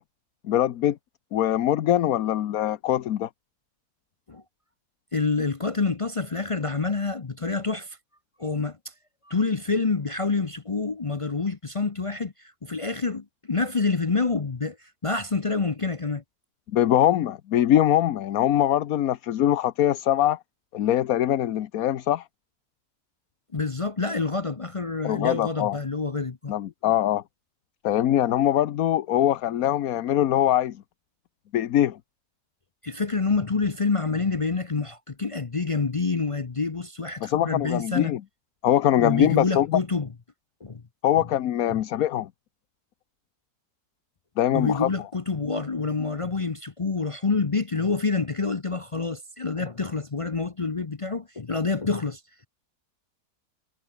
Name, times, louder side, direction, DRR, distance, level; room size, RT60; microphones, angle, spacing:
voice 1, 0.4-1.0 1.3-3.3 16.7-20.4 20.7-22.2 25.0-25.8 26.5-27.2 27.8-30.8 31.5-32.0 37.2-38.2 38.6-39.8 41.0-42.3 44.4-44.9, left 12 dB, 70° left, 1.2 m, -22 dB
voice 2, 5.1-8.0 8.4-8.8 9.3-16.2 23.5-26.5 32.8-38.1 39.0-40.1 40.6-40.8 41.1-41.2 41.7-41.8 44.5-52.2, left 4 dB, 35° left, 0.5 m, -27 dB
omnidirectional pair, 1.6 m